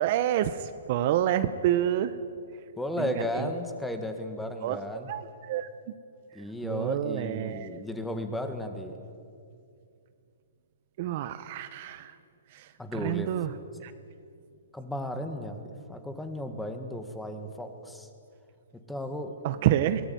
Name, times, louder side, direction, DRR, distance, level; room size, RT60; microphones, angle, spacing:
voice 1, 0.0-2.2 3.0-3.5 4.6-4.8 5.1-5.7 6.3-7.8 11.0-12.2 12.5-13.5 13.8-13.9 19.4-20.0, right 11 dB, 40° right, 12 dB, 0.9 m, -28 dB
voice 2, 2.8-5.1 6.3-9.0 12.8-13.3 14.7-18.1 18.9-19.3, left 1 dB, 5° left, 7 dB, 1.8 m, -34 dB
22.5 x 18.5 x 9.4 m, 2.4 s
hypercardioid pair, 155°, 0 cm